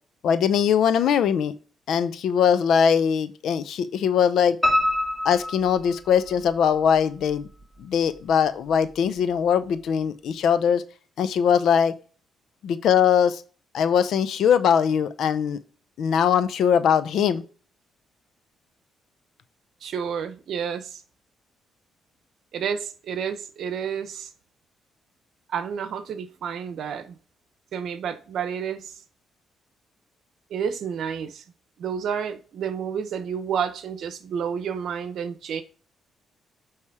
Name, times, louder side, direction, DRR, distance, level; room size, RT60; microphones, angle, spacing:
voice 1, 0.2-1.5 1.9-4.6 5.2-7.5 7.8-10.8 11.2-11.9 12.6-13.4 13.7-15.6 16.0-17.4, left 8 dB, 70° left, 0.6 m, -21 dB
Piano, 4.6-6.5 7.0-7.8 8.2-8.3 8.7-8.8 9.1-9.2, left 1 dB, 5° right, 2.4 m, -26 dB
voice 2, 19.8-21.0 22.5-24.3 25.5-27.2 27.7-28.9 30.5-31.4 31.8-35.6, right 7 dB, 70° right, 0.9 m, -30 dB
8.5 x 3.3 x 4.8 m
cardioid pair, 90°, 0 cm